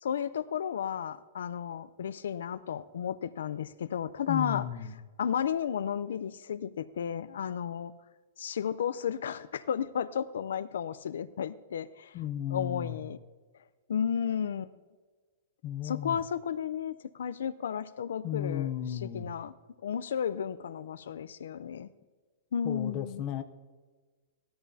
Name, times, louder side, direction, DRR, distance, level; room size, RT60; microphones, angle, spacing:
voice 1, 0.0-4.7 5.2-7.9 8.4-12.1 12.5-13.2 13.9-14.7 15.8-19.5 19.8-21.9 22.5-23.2, left 8 dB, 80° left, 15 dB, 0.5 m, -33 dB
voice 2, 4.3-4.9 12.1-13.0 15.6-16.2 18.2-19.3 22.6-23.4, left 10 dB, 30° left, 8 dB, 0.7 m, -34 dB
18.5 x 13.5 x 2.7 m, 1.4 s
hypercardioid pair, 170°, 0 cm